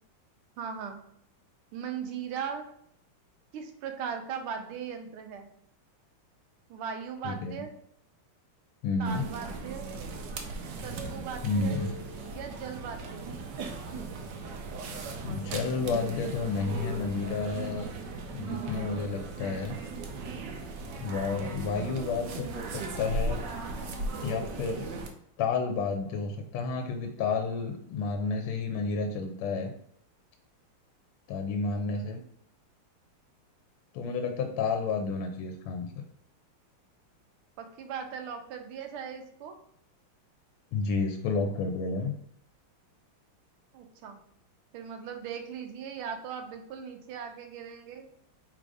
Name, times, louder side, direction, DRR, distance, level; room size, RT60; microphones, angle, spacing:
voice 1, 0.6-1.0 1.7-2.7 3.5-5.5 6.7-7.7 9.0-9.9 10.8-11.8 12.3-13.3 31.7-32.2 37.6-39.6 43.7-44.2 44.7-48.1, right 7 dB, 85° right, 5 dB, 1.6 m, -38 dB
voice 2, 8.8-9.3 11.4-11.9 15.2-17.9 18.3-19.8 21.0-23.4 24.2-24.9 25.4-29.7 31.3-32.2 33.9-35.9 40.7-42.1, left 4 dB, 85° left, 5 dB, 1.4 m, -31 dB
sound 1, 9.0-25.1, right 3 dB, 70° right, 1.1 m, -37 dB
3.9 x 2.5 x 4.7 m, 0.69 s
omnidirectional pair, 2.3 m